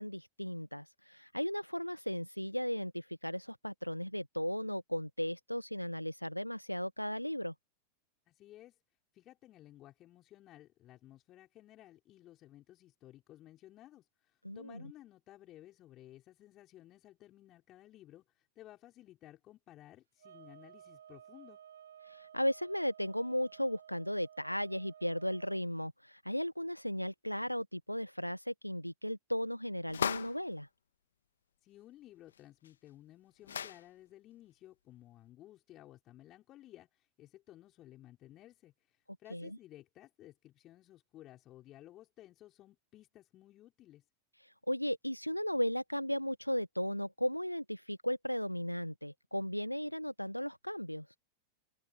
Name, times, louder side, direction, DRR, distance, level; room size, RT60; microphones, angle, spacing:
voice 1, 0.0-7.5 14.4-14.8 22.0-30.7 39.3-39.5 44.4-51.2, equal, 90° left, 1.4 m, -36 dB
voice 2, 8.3-8.8 9.1-21.6 31.6-44.0, left 14 dB, 35° left, 5.3 m, -56 dB
sound 1, 20.2-25.6, right 9 dB, 65° right, 6.4 m, -56 dB
wet towel on body-source, 29.9-30.5 32.3-32.4 32.6-32.7 33.4-33.9, left 8 dB, 70° left, 1.8 m, -36 dB
figure-of-eight pair, 90°, 0 cm